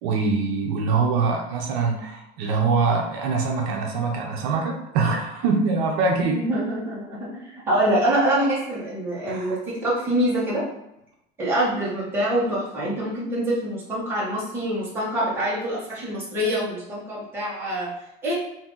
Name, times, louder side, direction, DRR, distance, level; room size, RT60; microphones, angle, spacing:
voice 1, 0.0-6.4 9.3-9.6, right 4 dB, 70° right, 1 dB, 0.6 m, -24 dB
voice 2, 6.2-10.6 11.4-17.9 18.2-18.3, right 1 dB, 10° right, -8 dB, 1.1 m, -25 dB
2.7 x 2.6 x 3.6 m, 0.86 s
cardioid pair, 180°, 19 cm